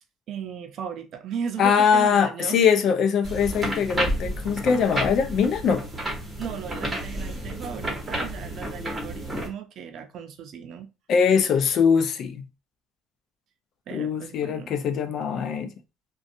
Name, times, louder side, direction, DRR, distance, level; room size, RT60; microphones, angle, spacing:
voice 1, 0.3-2.6 6.4-10.9 13.9-14.7, right 7 dB, 60° right, 0.5 m, -36 dB
voice 2, 1.6-5.9 11.1-12.5 13.9-15.7, left 6 dB, 60° left, 0.5 m, -22 dB
sound 1, 3.2-9.5, right 1 dB, 15° right, 1.1 m, -31 dB
2.5 x 2.3 x 2.6 m
cardioid pair, 100°, 0 cm